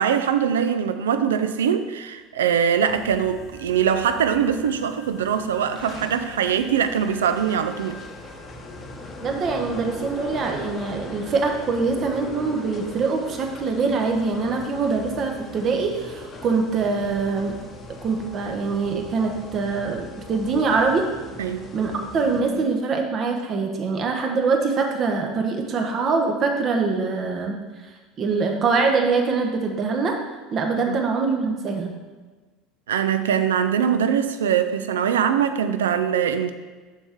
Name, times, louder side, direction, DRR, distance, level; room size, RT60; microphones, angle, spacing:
voice 1, 0.0-8.0 21.4-21.6 30.9-31.0 32.9-36.5, right 8 dB, 70° right, 10 dB, 0.4 m, -22 dB
sound 1, 2.9-22.6, equal, 5° right, 1.6 m, -45 dB
sound 2, 5.1-22.4, left 2 dB, 30° left, 0.8 m, -41 dB
voice 2, 9.2-17.6 17.9-21.1 21.7-27.5 28.2-30.2 30.5-31.9, right 4 dB, 40° right, 3 dB, 1.0 m, -24 dB
6.9 x 5.8 x 3.5 m, 1.3 s
figure-of-eight pair, 70°, 0 cm